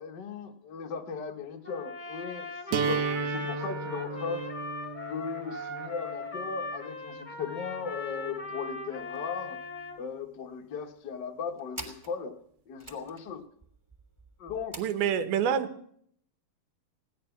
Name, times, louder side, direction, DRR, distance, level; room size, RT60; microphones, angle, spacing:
voice 1, 0.0-4.4 5.1-9.6 10.0-12.4 12.7-13.4 14.4-14.7, left 5 dB, 85° left, 4 dB, 0.9 m, -37 dB
Trumpet, 1.6-10.0, left 3 dB, 25° left, 0.9 m, -39 dB
sound 1, 2.7-8.7, right 5 dB, 70° right, 2.6 m, -35 dB
sound 2, 9.0-9.2 9.5-9.6 9.9-10.5 11.1-15.2, right 1 dB, 5° right, 2.3 m, -47 dB
voice 2, 14.8-15.9, right 8 dB, 85° right, 10 dB, 3.1 m, -28 dB
17.0 x 11.0 x 7.1 m, 0.65 s
omnidirectional pair, 4.2 m